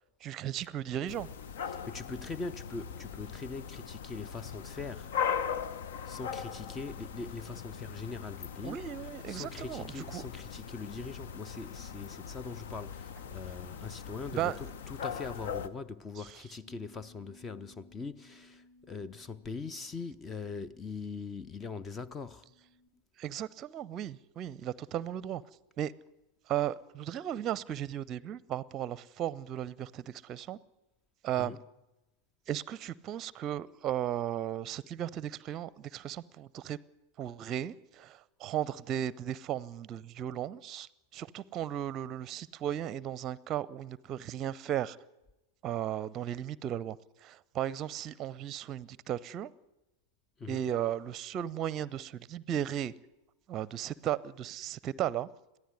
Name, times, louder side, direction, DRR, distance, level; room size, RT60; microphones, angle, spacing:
voice 1, 0.2-1.3 8.6-9.8 10.1-10.3 14.3-14.6 23.2-25.4 25.8-25.9 26.5-30.6 31.2-31.6 32.5-36.8 37.2-45.0 45.6-49.5 50.5-52.9 53.5-55.3, right 11 dB, 30° right, 0.7 m, -35 dB
sound 1, 1.1-15.7, left 7 dB, 55° left, 1.0 m, -40 dB
voice 2, 1.7-5.1 6.1-8.8 9.3-22.5 31.4-31.6 50.4-50.7, left 4 dB, 20° left, 0.7 m, -42 dB
Bass guitar, 16.6-22.9, left 2 dB, 80° left, 4.5 m, -61 dB
22.0 x 14.5 x 9.7 m
figure-of-eight pair, 90°, 0 cm